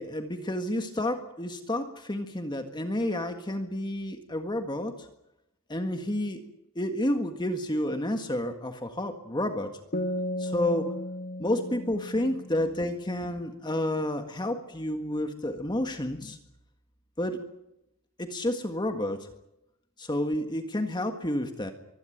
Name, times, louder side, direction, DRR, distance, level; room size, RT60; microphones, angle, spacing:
voice 1, 0.0-5.1 5.7-6.4 6.7-9.8 10.4-10.9 11.4-16.4 17.2-17.4 18.2-19.3 20.0-21.7, left 1 dB, 20° left, 6 dB, 1.7 m, -30 dB
sound 1, 9.9-13.4, left 1 dB, 40° left, 1.5 m, -35 dB
24.0 x 16.5 x 9.2 m, 0.85 s
head